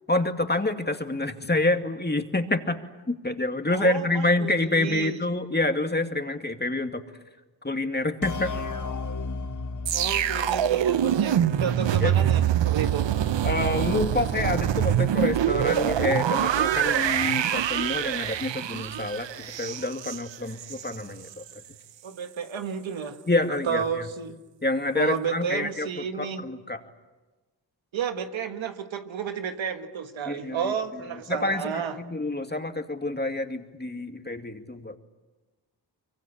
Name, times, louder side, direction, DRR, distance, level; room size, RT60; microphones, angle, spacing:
voice 1, 0.1-2.8 3.1-7.0 7.6-8.5 12.0-12.1 13.4-21.3 23.3-23.8 24.6-25.9 26.2-26.8 30.3-30.7 31.3-35.0, left 2 dB, 20° left, 2.4 m, -27 dB
voice 2, 3.7-5.2 9.9-13.1 22.0-23.2 23.6-24.4 24.9-26.4 27.9-32.0, right 7 dB, 90° right, 1.6 m, -31 dB
sound 1, 8.2-11.8, left 4 dB, 40° left, 1.4 m, -35 dB
sound 2, 9.9-21.0 21.3-21.5, right 10 dB, 70° right, 0.8 m, -25 dB
24.0 x 23.5 x 8.8 m
cardioid pair, 45°, 45 cm